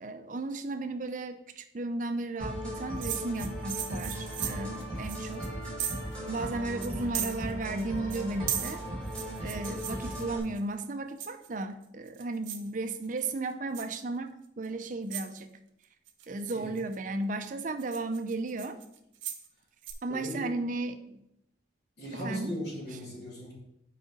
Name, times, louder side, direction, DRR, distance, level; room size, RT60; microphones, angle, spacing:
voice 1, 0.0-5.5 6.3-8.9 9.4-15.6 16.3-18.8 20.0-21.3 22.2-22.6, right 2 dB, 40° right, 9 dB, 0.5 m, -35 dB
sound 1, 2.4-10.4, equal, 5° left, 2.0 m, -37 dB
sound 2, 3.0-6.2 6.5-6.6 6.8-7.8 8.1-10.6 11.2-11.6 12.1-12.7 13.0-13.4 13.7-14.0 14.6-14.7 15.1-15.4 16.1-17.0 17.4-19.5 19.8-19.9, right 10 dB, 80° right, 0.8 m, -37 dB
voice 2, 20.1-20.5 22.0-23.5, equal, 60° left, -5 dB, 2.7 m, -37 dB
5.2 x 4.8 x 4.9 m, 0.79 s
head